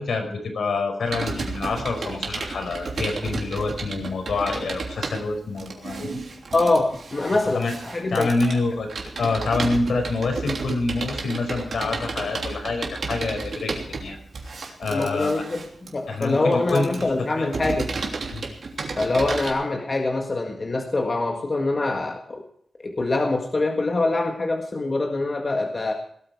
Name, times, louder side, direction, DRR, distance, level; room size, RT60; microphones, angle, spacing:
voice 1, 0.0-6.2 7.5-7.7 8.1-8.9 9.2-14.2 14.4-15.4 16.1-17.1 17.4-17.5 18.3-18.4, left 3 dB, 75° left, 4 dB, 5.2 m, -27 dB
Computer keyboard, 1.1-19.5, right 3 dB, 55° right, 3.1 m, -32 dB
voice 2, 6.5-8.3 14.9-15.6 15.9-17.9 19.0-22.4 22.8-25.9, left 2 dB, 30° left, 2 dB, 1.8 m, -24 dB
18.5 x 13.5 x 4.8 m, 0.64 s
wide cardioid pair, 160°, 0 cm